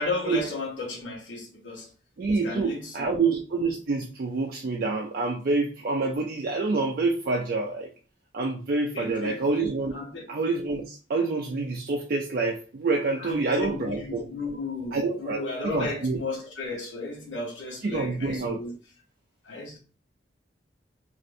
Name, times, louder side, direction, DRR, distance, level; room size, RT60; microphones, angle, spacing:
voice 1, 0.0-1.9 2.4-3.2 8.9-9.4 9.9-10.2 13.2-18.8 19.4-19.8, left 2 dB, 90° left, 0.9 m, -34 dB
voice 2, 2.2-7.9 8.3-9.9 10.3-14.2 14.9-16.2 17.8-18.6, right 3 dB, 50° right, 0.4 m, -27 dB
3.1 x 2.5 x 2.5 m
head